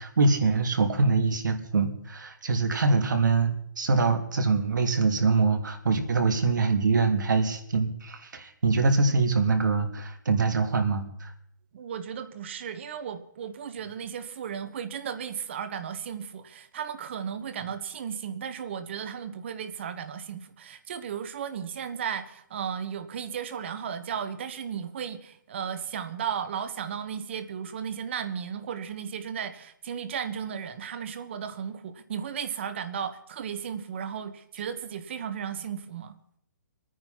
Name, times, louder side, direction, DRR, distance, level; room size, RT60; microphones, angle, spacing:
voice 1, 0.0-11.3, right 4 dB, 85° right, 5 dB, 2.9 m, -24 dB
voice 2, 11.7-36.1, right 7 dB, 40° right, 11 dB, 1.3 m, -35 dB
23.0 x 9.6 x 5.8 m, 0.67 s
hypercardioid pair, 170°, 10 cm